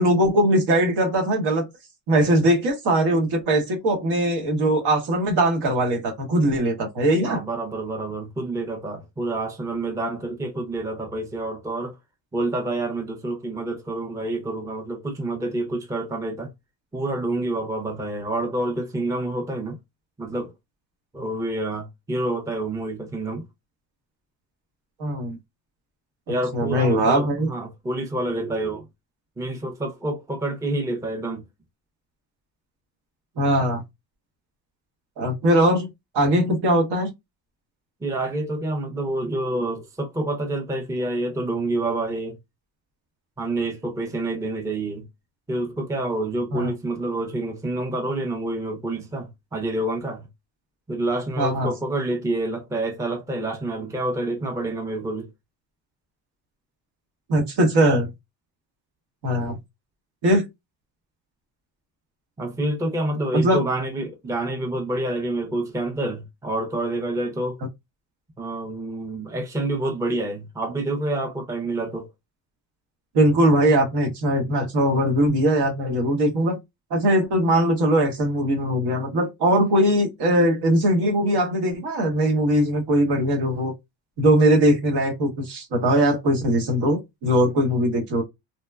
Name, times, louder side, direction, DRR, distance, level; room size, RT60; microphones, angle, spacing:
voice 1, 0.0-1.6 2.1-7.4 25.0-25.4 26.5-27.5 33.4-33.8 35.2-35.9 36.1-37.1 46.5-46.7 51.4-51.7 57.3-58.1 59.2-59.6 60.2-60.4 63.3-63.6 73.1-76.6 76.9-83.7 84.2-88.2, right 1 dB, 70° right, 1.1 m, -20 dB
voice 2, 7.2-11.9 12.3-16.5 16.9-19.8 20.2-20.5 21.1-23.4 26.3-28.8 29.4-31.4 38.0-42.3 43.4-45.0 45.5-50.3 50.9-55.3 62.4-67.6 68.4-72.1, right 2 dB, 5° right, 0.5 m, -28 dB
2.9 x 2.1 x 2.2 m
cardioid pair, 105°, 43 cm